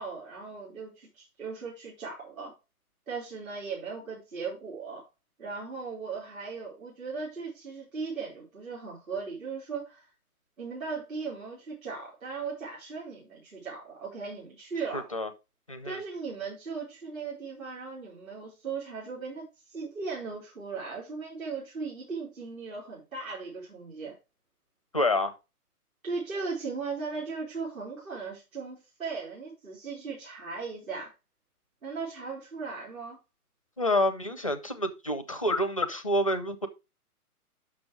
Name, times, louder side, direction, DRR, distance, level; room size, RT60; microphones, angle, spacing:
voice 1, 0.0-2.5 3.1-5.0 5.4-10.0 10.6-15.1 15.8-24.1 26.0-31.1 31.8-33.2, right 4 dB, 60° right, 3.8 m, -37 dB
voice 2, 14.9-15.3 15.7-16.0 24.9-25.3 33.8-36.7, left 1 dB, 25° left, 0.4 m, -28 dB
6.1 x 6.1 x 4.8 m
figure-of-eight pair, 130°, 46 cm